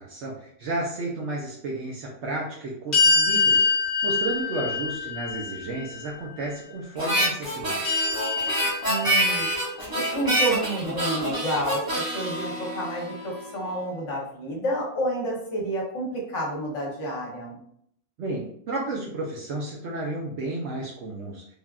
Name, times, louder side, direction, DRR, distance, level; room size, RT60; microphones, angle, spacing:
voice 1, 0.0-7.8 18.2-21.5, right 2 dB, 65° right, -2 dB, 0.7 m, -32 dB
sound 1, 2.9-6.1 7.8-9.6, left 4 dB, 35° left, 0.9 m, -24 dB
Harmonica, 7.0-13.5, right 1 dB, 25° right, 0.5 m, -27 dB
voice 2, 8.8-9.5 10.1-17.6, right 1 dB, 60° left, -2 dB, 1.0 m, -29 dB
3.3 x 2.3 x 2.2 m, 0.69 s
omnidirectional pair, 1.6 m